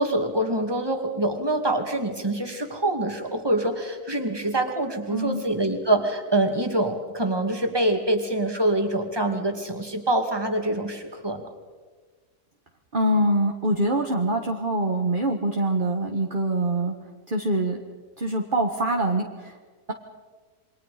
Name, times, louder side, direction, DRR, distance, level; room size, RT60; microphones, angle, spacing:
voice 1, 0.0-11.5, right 1 dB, 15° right, 4 dB, 2.5 m, -25 dB
voice 2, 5.1-5.4 12.9-17.0 17.3-17.8 18.2-19.6, right 1 dB, 35° right, 2 dB, 1.7 m, -24 dB
28.5 x 24.0 x 5.1 m, 1.4 s
omnidirectional pair, 1.6 m